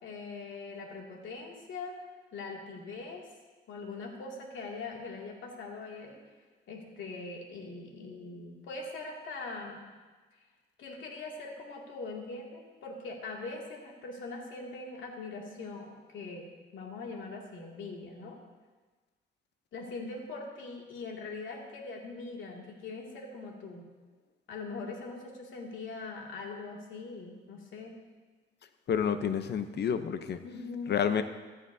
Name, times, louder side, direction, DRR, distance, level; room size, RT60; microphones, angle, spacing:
voice 1, 0.0-2.0 2.3-3.3 3.7-6.2 6.7-9.8 10.8-18.4 19.7-23.9 24.5-28.0 30.4-31.0, left 3 dB, 75° left, -1 dB, 2.5 m, -42 dB
voice 2, 28.9-30.4 30.9-31.2, left 7 dB, 60° left, 10 dB, 0.8 m, -29 dB
15.0 x 14.0 x 2.8 m, 1.3 s
cardioid pair, 90°, 20 cm